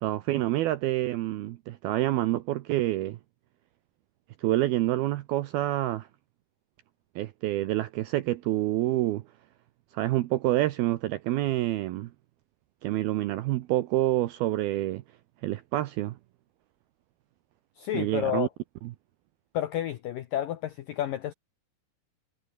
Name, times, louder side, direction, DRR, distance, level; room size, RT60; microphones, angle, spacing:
voice 1, 0.0-3.2 4.4-6.1 7.2-9.2 9.9-12.1 12.8-15.0 15.4-16.2 17.9-18.5, right 15 dB, 80° right, 2.2 m, -27 dB
voice 2, 17.8-18.5 19.5-21.3, left 12 dB, 85° left, 2.0 m, -30 dB
omnidirectional pair, 5.4 m